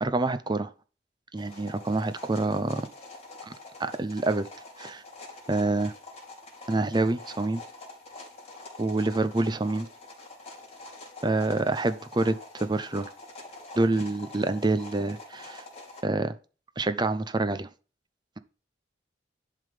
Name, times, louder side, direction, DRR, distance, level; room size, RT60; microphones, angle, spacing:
voice 1, 0.0-0.7 1.3-2.8 3.5-4.5 4.8-5.0 5.5-5.9 6.7-7.6 8.8-9.9 11.2-13.1 13.8-15.6 16.0-16.4 16.8-17.7, right 2 dB, 25° right, 11 dB, 0.7 m, -27 dB
sound 1, 1.4-16.0, left 2 dB, 40° left, 3.1 m, -46 dB
11.0 x 3.8 x 5.0 m, 0.34 s
head